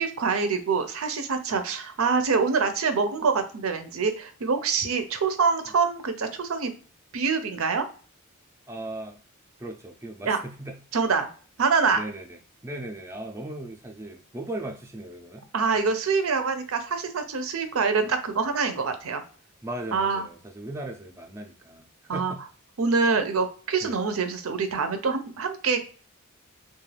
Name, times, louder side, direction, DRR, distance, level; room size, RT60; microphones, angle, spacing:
voice 1, 0.0-6.7 7.1-7.9 10.3-10.4 10.9-11.3 11.6-12.0 15.5-19.2 19.9-20.2 22.1-22.3 22.8-25.8, right 5 dB, 75° right, 8 dB, 0.5 m, -25 dB
voice 2, 8.7-9.2 9.6-10.8 11.9-15.5 19.6-22.4 23.8-24.0, right 1 dB, 15° right, 2 dB, 0.4 m, -38 dB
2.4 x 2.2 x 3.2 m, 0.41 s
head